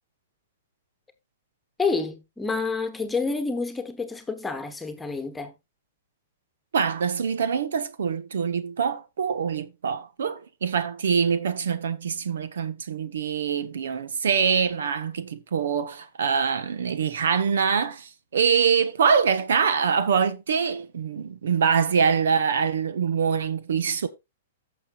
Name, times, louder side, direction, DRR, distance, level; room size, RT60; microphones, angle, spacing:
voice 1, 1.8-5.5, left 4 dB, 5° left, 1.3 m, -28 dB
voice 2, 6.7-24.1, right 6 dB, 85° right, 1.3 m, -24 dB
15.0 x 6.5 x 2.4 m
hypercardioid pair, 150°, 0 cm